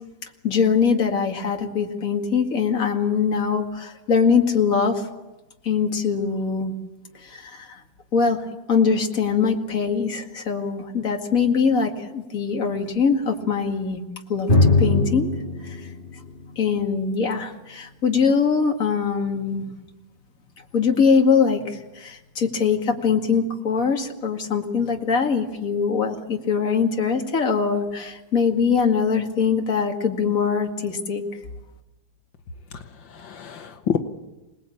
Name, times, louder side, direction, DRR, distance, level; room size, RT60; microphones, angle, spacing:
voice 1, 0.4-5.0 5.6-6.7 7.2-7.8 8.1-8.4 8.7-14.0 14.3-14.5 14.8-15.3 15.6-15.8 16.6-19.7 20.7-31.2, left 5 dB, 45° left, 2 dB, 2.5 m, -22 dB
Drum, 14.5-18.0, left 2 dB, 25° left, 3.0 m, -22 dB
voice 2, 32.7-34.0, left 8 dB, 80° left, 6 dB, 2.0 m, -28 dB
27.0 x 19.5 x 8.6 m, 1.0 s
omnidirectional pair, 2.0 m